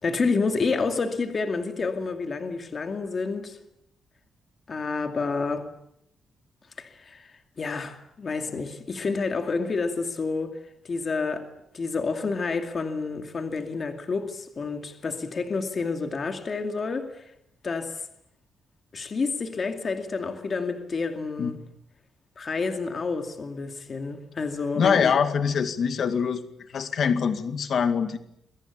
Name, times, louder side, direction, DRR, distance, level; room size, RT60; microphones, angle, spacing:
voice 1, 0.0-3.6 4.7-5.7 6.8-10.6 10.8-17.3 17.6-18.1 18.9-21.6 22.4-25.1, left 4 dB, 35° left, 2.4 m, -29 dB
voice 2, 24.8-26.4 26.7-28.2, left 6 dB, 50° left, 2.2 m, -24 dB
28.0 x 23.0 x 8.5 m
wide cardioid pair, 170°, 0 cm